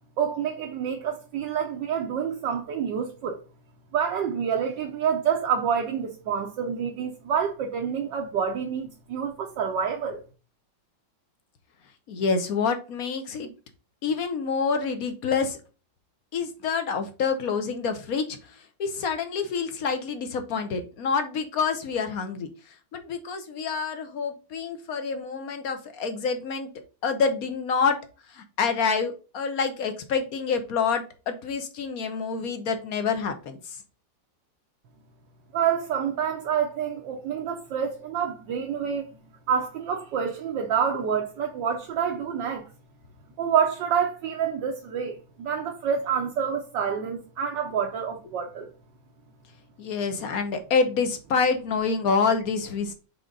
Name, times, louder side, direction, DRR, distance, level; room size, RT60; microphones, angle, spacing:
voice 1, 0.2-3.4 3.9-10.2 35.5-39.0 39.5-42.7 43.4-48.7, right 7 dB, 75° right, 1.5 m, -27 dB
voice 2, 12.1-13.5 14.0-15.6 16.3-18.4 18.8-22.5 22.9-26.7 27.0-28.0 28.3-33.8 49.8-52.9, left 5 dB, 60° left, 1.2 m, -27 dB
5.1 x 3.6 x 5.3 m
omnidirectional pair, 2.0 m